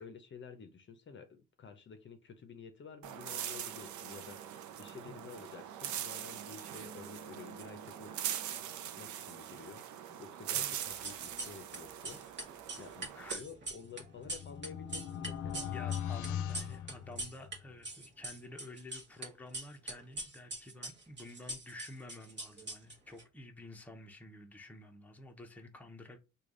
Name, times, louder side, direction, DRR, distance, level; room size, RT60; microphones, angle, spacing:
voice 1, 0.0-8.1 8.8-12.2 12.8-15.6, left 6 dB, 40° left, 0.6 m, -51 dB
sound 1, 3.0-13.4, right 10 dB, 70° right, 0.5 m, -42 dB
sound 2, 10.8-11.8 12.0-17.6 17.8-19.3 19.5-23.2, right 1 dB, 35° right, 1.2 m, -42 dB
voice 2, 12.8-13.4 15.5-26.2, left 1 dB, 5° left, 0.7 m, -50 dB
sound 3, 13.7-17.7, left 9 dB, 85° left, 0.5 m, -40 dB
3.3 x 2.3 x 3.7 m
cardioid pair, 90°, 30 cm